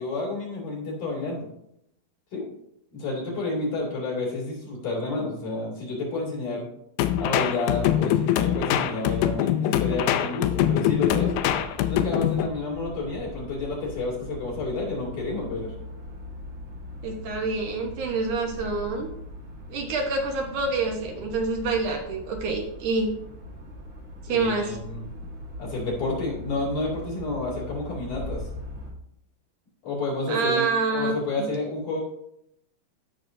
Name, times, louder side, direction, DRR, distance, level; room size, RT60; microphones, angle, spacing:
voice 1, 0.0-1.5 2.3-2.5 2.9-6.7 7.2-11.3 11.9-15.7 24.3-25.0 25.6-28.5 29.8-32.0, left 3 dB, 65° left, -3 dB, 4.1 m, -30 dB
sound 1, 7.0-12.5, left 11 dB, 90° left, 2.4 m, -23 dB
sound 2, 10.9-28.9, left 1 dB, 40° right, 1.1 m, -40 dB
voice 2, 17.0-19.1 19.7-23.1 24.2-24.8 30.3-31.1, right 3 dB, 70° right, 1 dB, 2.4 m, -27 dB
15.5 x 6.2 x 2.6 m, 0.78 s
omnidirectional pair, 4.0 m